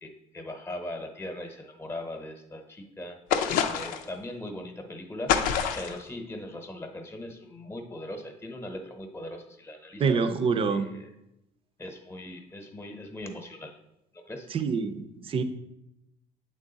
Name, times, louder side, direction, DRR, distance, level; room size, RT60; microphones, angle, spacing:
voice 1, 0.0-3.2 3.7-5.4 5.8-10.3 10.7-11.1 11.8-13.8 14.1-14.5, left 1 dB, 15° left, 5 dB, 0.9 m, -40 dB
sound 1, 3.3-4.1 5.3-6.0, left 8 dB, 80° left, 0.6 m, -26 dB
voice 2, 10.0-10.9 14.5-15.4, right 5 dB, 40° right, 9 dB, 0.6 m, -26 dB
8.4 x 3.7 x 4.0 m, 0.86 s
cardioid pair, 105°, 14 cm